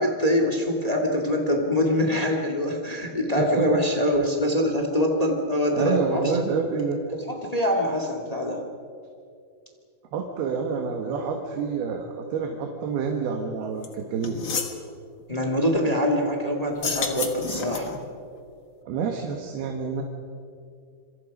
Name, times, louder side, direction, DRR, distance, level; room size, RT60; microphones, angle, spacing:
voice 1, 0.0-6.3 7.1-8.6 15.3-17.9, equal, 25° left, 3 dB, 0.7 m, -24 dB
voice 2, 5.7-7.0 10.1-14.4 18.8-20.0, right 5 dB, 70° right, 2 dB, 3.3 m, -28 dB
sound 1, 13.8-13.9 14.2-14.8 16.7-18.0, left 5 dB, 65° left, 1.1 m, -30 dB
27.0 x 23.5 x 5.4 m, 2.4 s
omnidirectional pair, 4.8 m